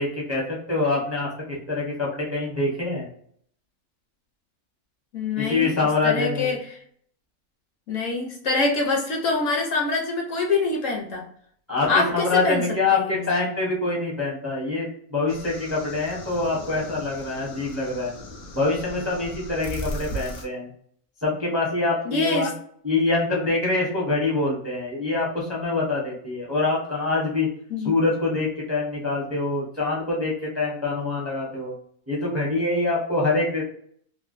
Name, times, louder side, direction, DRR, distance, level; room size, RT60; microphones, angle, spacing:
voice 1, 0.0-3.1 5.4-6.6 11.7-18.2 18.5-20.7 21.2-22.5 22.8-27.5 27.8-31.7 32.1-33.6, left 3 dB, 15° right, -4 dB, 0.5 m, -25 dB
voice 2, 5.1-5.7 6.0-6.8 7.9-11.3 11.9-12.6 12.9-13.2 22.1-22.5 27.7-28.0, left 3 dB, 65° left, 1 dB, 0.9 m, -25 dB
sound 1, 15.3-20.5, equal, 85° left, 1.2 m, -37 dB
3.2 x 2.2 x 2.4 m, 0.63 s
omnidirectional pair, 1.5 m